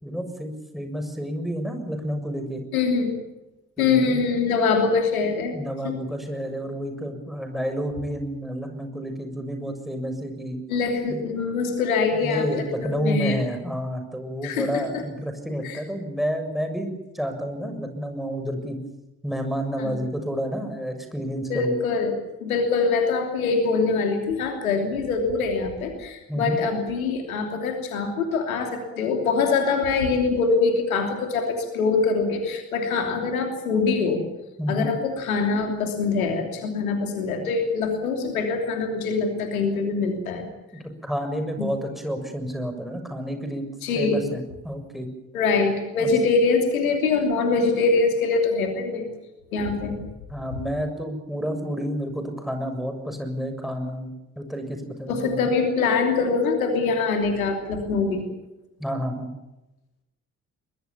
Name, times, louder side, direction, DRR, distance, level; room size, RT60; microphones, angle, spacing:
voice 1, 0.0-2.6 3.8-4.2 5.5-10.6 11.1-11.2 12.1-18.8 19.2-21.8 26.3-26.6 34.6-34.9 41.0-43.6 44.0-45.1 46.0-46.1 50.3-55.5 58.8-59.3, equal, ahead, 5 dB, 6.9 m, -30 dB
voice 2, 2.7-3.2 3.8-5.6 5.8-6.0 10.7-13.4 14.4-15.0 15.6-15.8 19.8-20.0 21.5-22.1 22.4-34.3 34.7-40.5 41.6-41.7 43.8-44.2 45.3-49.1 49.5-50.0 55.1-58.2, left 4 dB, 80° left, 4 dB, 3.0 m, -24 dB
23.5 x 21.0 x 7.3 m, 0.96 s
figure-of-eight pair, 45°, 42 cm